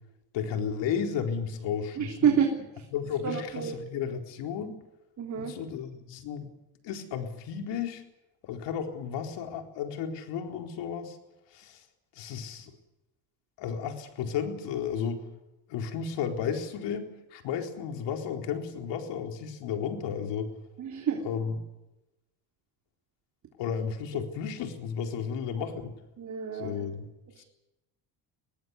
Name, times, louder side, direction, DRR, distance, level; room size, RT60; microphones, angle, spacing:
voice 1, 0.3-2.3 2.9-4.8 5.3-6.5 6.8-8.0 8.4-11.2 11.5-11.8 12.1-12.7 13.6-15.2 15.7-20.5 21.2-21.6 23.6-25.9 26.5-27.1 27.4-27.5, left 7 dB, 70° left, 4 dB, 4.2 m, -33 dB
voice 2, 2.0-2.6 3.2-3.7 5.2-5.5 20.8-21.2 26.2-26.8, right 7 dB, 40° right, 2 dB, 3.5 m, -28 dB
24.0 x 18.5 x 8.3 m, 0.96 s
cardioid pair, 110°, 44 cm